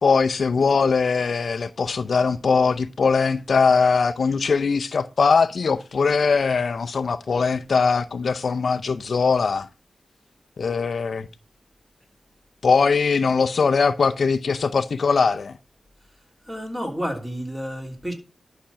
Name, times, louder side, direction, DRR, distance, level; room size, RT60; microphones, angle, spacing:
voice 1, 0.0-9.7 10.6-11.3 12.6-15.5, left 5 dB, 65° left, 0.6 m, -21 dB
voice 2, 16.5-18.1, equal, 10° right, 3.2 m, -30 dB
11.5 x 5.9 x 5.7 m
wide cardioid pair, 95°, 0 cm